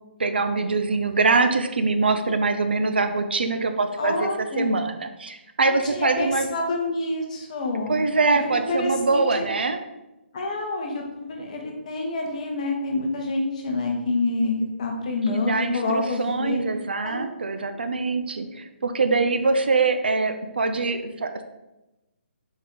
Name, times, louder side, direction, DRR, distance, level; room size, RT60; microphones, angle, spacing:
voice 1, 0.2-6.5 7.9-9.8 15.3-21.4, right 3 dB, 55° right, 7 dB, 0.4 m, -24 dB
voice 2, 4.0-4.7 5.7-8.0 8.3-9.5 10.3-16.6 17.0-17.9, left 2 dB, 35° left, 1 dB, 0.9 m, -27 dB
4.3 x 3.5 x 3.5 m, 0.99 s
figure-of-eight pair, 140°, 6 cm